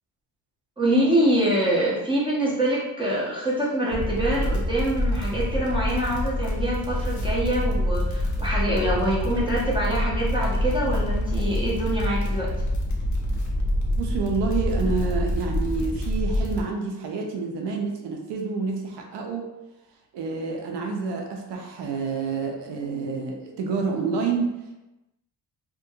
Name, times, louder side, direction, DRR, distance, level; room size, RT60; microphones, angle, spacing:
voice 1, 0.8-12.5, right 1 dB, 10° right, -6 dB, 0.8 m, -25 dB
sound 1, 3.9-16.6, left 1 dB, 45° left, 0.6 m, -26 dB
voice 2, 14.0-19.5 20.1-24.6, right 4 dB, 85° right, 1 dB, 0.5 m, -28 dB
2.6 x 2.1 x 2.7 m, 1.0 s
cardioid pair, 95°, 41 cm